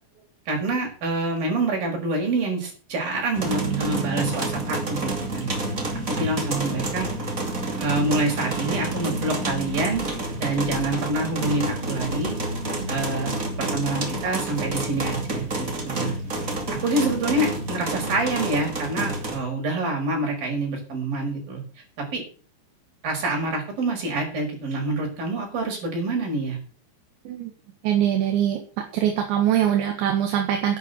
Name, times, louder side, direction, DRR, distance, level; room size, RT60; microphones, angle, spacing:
voice 1, 0.5-5.5 6.1-7.1 7.8-10.1 10.4-12.3 12.9-16.1 16.8-21.6 22.0-22.2 23.0-26.6, right 2 dB, 50° right, 0 dB, 6.8 m, -26 dB
sound 1, 3.3-19.4, right 2 dB, 30° right, 1.7 m, -28 dB
voice 2, 27.8-28.6 28.9-30.8, right 10 dB, 75° right, 3 dB, 3.8 m, -22 dB
11.0 x 8.5 x 8.0 m, 0.42 s
omnidirectional pair, 5.5 m